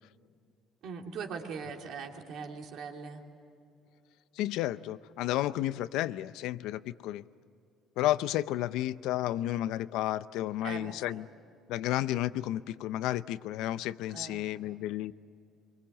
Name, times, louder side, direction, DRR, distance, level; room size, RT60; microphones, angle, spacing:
voice 1, 0.8-3.2 10.6-11.2 14.1-14.7, right 5 dB, 55° right, 2 dB, 2.8 m, -41 dB
voice 2, 4.4-7.2 8.0-11.2 11.7-15.1, left 14 dB, 80° left, 15 dB, 0.6 m, -32 dB
25.5 x 24.0 x 7.3 m, 2.5 s
cardioid pair, 165°, 0 cm